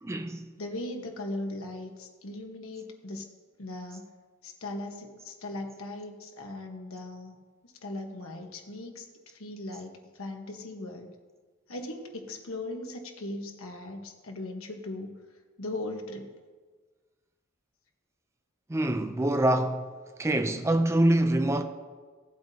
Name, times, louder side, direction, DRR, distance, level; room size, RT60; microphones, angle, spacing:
voice 1, 0.0-0.5 18.7-19.9 20.2-21.6, right 1 dB, 15° right, 0.4 m, -25 dB
voice 2, 0.6-3.3 3.6-4.1 4.4-7.4 7.6-11.1 11.7-15.1 15.6-16.3, left 2 dB, 75° left, 1.2 m, -38 dB
16.5 x 7.9 x 2.8 m
head